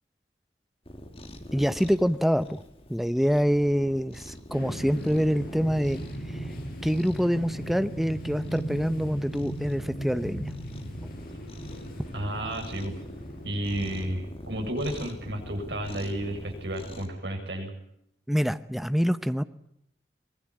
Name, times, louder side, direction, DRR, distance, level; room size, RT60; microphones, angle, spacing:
Cat, 0.8-17.1, equal, 35° left, 2.9 m, -44 dB
voice 1, 1.5-2.6 2.9-6.0 6.3-6.4 6.8-10.5 18.3-19.4, equal, ahead, 11 dB, 0.9 m, -26 dB
sound 1, 4.5-14.1, right 1 dB, 50° left, 7.8 m, -38 dB
voice 2, 12.1-13.0 13.4-17.7, right 1 dB, 75° right, 3 dB, 7.5 m, -32 dB
24.5 x 19.5 x 8.8 m, 0.75 s
head